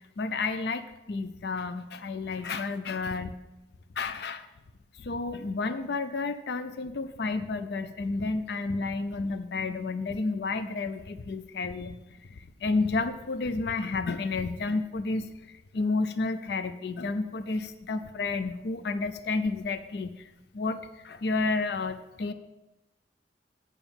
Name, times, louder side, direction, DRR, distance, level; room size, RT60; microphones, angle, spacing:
voice 1, 0.2-0.8 1.1-3.4 4.0-4.4 5.0-11.9 12.6-20.1 20.5-20.8 21.0-22.3, left 3 dB, 65° left, 11 dB, 0.5 m, -31 dB
8.9 x 5.9 x 7.1 m, 1.0 s
head